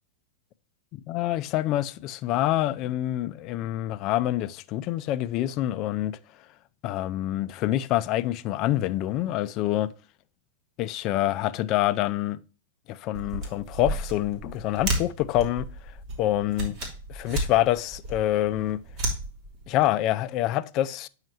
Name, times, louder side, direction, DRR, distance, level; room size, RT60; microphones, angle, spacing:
voice 1, 0.9-6.2 6.8-9.9 10.8-12.4 12.9-16.8 17.1-18.8 19.7-21.1, left 14 dB, 45° left, 0.5 m, -26 dB
sound 1, 13.1-19.8, right 2 dB, 45° right, 2.7 m, -33 dB
9.1 x 5.7 x 2.9 m
hypercardioid pair, 110°, 0 cm